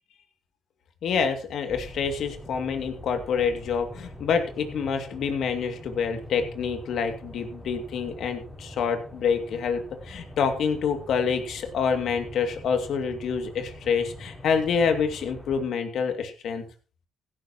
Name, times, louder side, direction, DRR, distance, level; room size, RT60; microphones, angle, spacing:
voice 1, 1.0-16.6, left 6 dB, 70° left, 6 dB, 2.4 m, -27 dB
sound 1, 1.7-15.6, equal, 10° left, 6.6 m, -43 dB
16.0 x 12.0 x 3.0 m, 0.36 s
cardioid pair, 90°, 0 cm